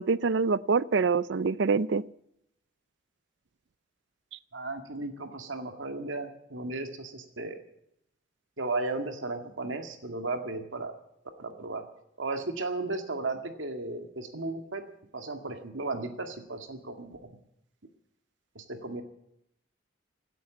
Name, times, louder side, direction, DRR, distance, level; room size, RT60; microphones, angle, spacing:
voice 1, 0.0-2.0, right 4 dB, 70° right, 19 dB, 0.5 m, -25 dB
voice 2, 4.5-7.6 8.6-11.0 11.4-11.9 12.2-14.8 15.1-17.4 18.6-19.0, right 3 dB, 90° right, 6 dB, 2.1 m, -35 dB
17.0 x 9.4 x 8.5 m, 0.78 s
head